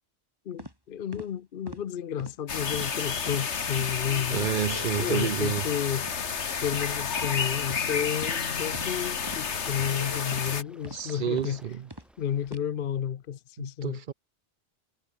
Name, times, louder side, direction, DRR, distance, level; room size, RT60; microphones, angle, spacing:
voice 1, 0.5-4.5 5.0-6.1 6.6-11.6 12.2-14.0, left 9 dB, 55° left, 0.8 m, -31 dB
sound 1, 0.6-0.7 1.1-1.3 1.7-1.8 2.2-2.4 2.7-2.9 3.3-3.4 3.8-4.0 4.4-4.6 4.9-5.1 5.5-5.7 6.1-6.2 6.7-6.9 7.2-7.3 7.7-7.8 8.2-8.4 8.7-8.9 9.3-9.4 9.8-9.9 10.3-10.5 10.8-11.0 11.4-11.5 11.9-12.1 12.5-12.6, right 1 dB, 20° right, 6.6 m, -43 dB
sound 2, 2.5-10.6, left 6 dB, 80° left, 1.7 m, -31 dB
Waves surf, 2.8-12.5, equal, ahead, 6.7 m, -57 dB
voice 2, 4.3-5.6 10.9-11.9 13.8-14.1, right 8 dB, 55° right, 0.7 m, -29 dB
omnidirectional pair, 1.1 m